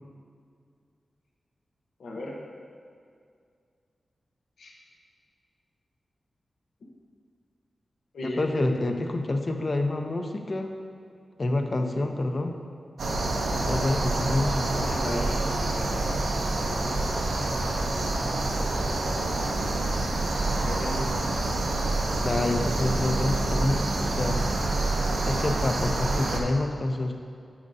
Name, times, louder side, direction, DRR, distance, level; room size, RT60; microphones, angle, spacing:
voice 1, 2.0-2.3 4.6-4.7 8.1-8.4 14.8-16.1 20.5-21.1, left 1 dB, 90° left, -2 dB, 0.8 m, -35 dB
voice 2, 8.2-10.7 11.4-12.6 13.7-15.0 22.2-24.4 25.2-27.1, left 2 dB, 40° left, 5 dB, 0.5 m, -27 dB
sound 1, 13.0-26.4, right 2 dB, 85° right, 0.6 m, -27 dB
8.6 x 5.3 x 2.6 m, 2.3 s
wide cardioid pair, 95°, 0 cm